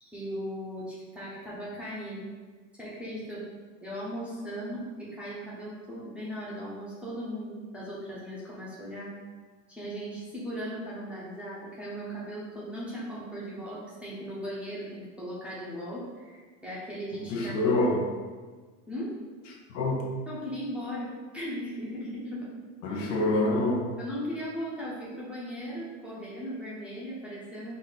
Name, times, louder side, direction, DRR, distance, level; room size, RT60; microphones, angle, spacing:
voice 1, 0.0-2.3 2.8-3.4 3.8-9.1 9.7-17.7 18.9-19.1 20.3-22.5 22.9-23.3 24.0-27.8, equal, 5° right, -8 dB, 0.7 m, -38 dB
voice 2, 17.1-18.1 19.7-20.2 22.8-23.9, left 2 dB, 70° left, -1 dB, 1.0 m, -26 dB
4.0 x 2.6 x 4.0 m, 1.4 s
supercardioid pair, 145°, 40 cm